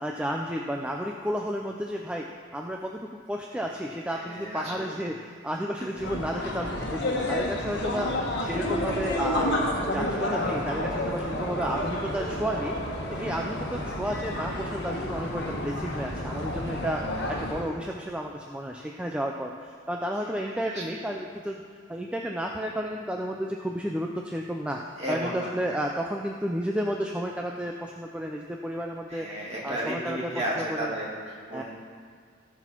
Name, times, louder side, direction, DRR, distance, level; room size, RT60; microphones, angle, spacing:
voice 1, 0.0-8.1 8.4-9.5 9.8-12.8 13.1-17.0 17.3-21.6 21.9-24.8 25.1-29.3 29.6-30.3 30.7-30.9 31.5-31.6, equal, 5° right, 1 dB, 0.4 m, -32 dB
voice 2, 4.1-5.0 5.8-6.0 16.6-16.9 20.6-21.1 25.0-25.5 29.1-31.6, right 1 dB, 30° right, -5 dB, 2.5 m, -34 dB
sound 1, 6.0-17.7, left 1 dB, 55° left, 1.4 m, -30 dB
17.5 x 6.1 x 4.5 m, 2.1 s
head